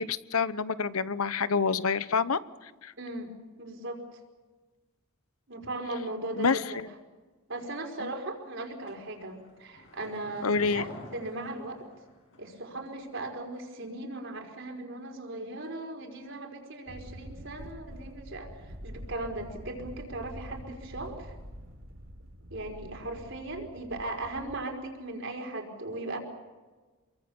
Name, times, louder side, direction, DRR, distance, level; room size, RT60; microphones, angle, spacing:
voice 1, 0.0-2.9 6.4-6.9 8.0-8.1 10.4-10.8, left 5 dB, 90° left, 14 dB, 0.9 m, -28 dB
voice 2, 3.0-3.3 3.6-4.2 5.5-6.8 7.5-11.9 12.4-18.5 18.8-21.3 22.5-26.2, right 2 dB, 60° right, 3 dB, 4.8 m, -38 dB
sound 1, 8.9-12.6 12.9-13.0, left 1 dB, 60° left, 7.6 m, -49 dB
sound 2, 16.9-24.6, equal, 75° right, 3.5 m, -46 dB
27.5 x 23.0 x 7.1 m, 1.3 s
head